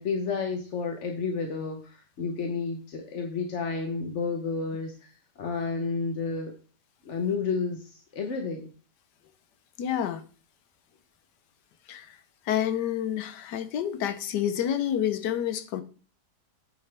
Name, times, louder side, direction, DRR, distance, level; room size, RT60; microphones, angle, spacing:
voice 1, 0.0-6.5 7.0-8.7, left 4 dB, 50° left, 1.2 m, -31 dB
voice 2, 9.8-10.2 11.9-12.1 12.5-15.8, left 10 dB, 90° left, 1.4 m, -28 dB
8.9 x 7.0 x 3.4 m
omnidirectional pair, 1.7 m